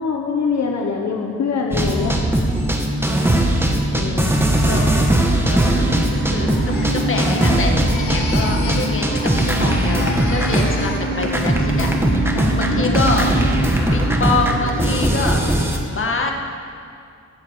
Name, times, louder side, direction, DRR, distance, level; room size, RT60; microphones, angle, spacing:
voice 1, 0.0-2.2 3.9-4.3 12.3-13.1, left 5 dB, 65° left, 1 dB, 1.2 m, -24 dB
sound 1, 1.7-11.0 11.2-15.8, right 1 dB, 10° right, 1.5 m, -19 dB
voice 2, 3.1-3.5 4.6-4.9 5.5-5.6 6.3-11.9 12.3-13.3 13.9-15.5 15.9-16.3, left 3 dB, 45° left, 2 dB, 1.7 m, -25 dB
sound 2, 5.6-15.0, right 2 dB, 45° right, 1.6 m, -27 dB
Crying sobbing, 6.4-8.9 9.2-11.4 11.8-12.2, left 3 dB, 90° left, 2.0 m, -32 dB
15.0 x 8.4 x 8.3 m, 2.4 s
wide cardioid pair, 125°, 29 cm